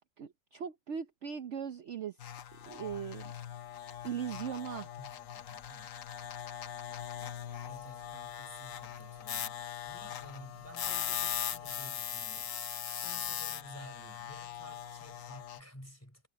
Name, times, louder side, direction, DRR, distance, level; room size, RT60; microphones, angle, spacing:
voice 1, 0.0-2.2 2.7-3.3 4.0-4.9, right 8 dB, 55° right, 0.8 m, -39 dB
sound 1, 2.2-15.6, left 9 dB, 55° left, 1.0 m, -40 dB
voice 2, 5.0-5.9 7.6-12.5 12.9-16.3, equal, 5° left, 4.2 m, -53 dB
omnidirectional pair, 2.0 m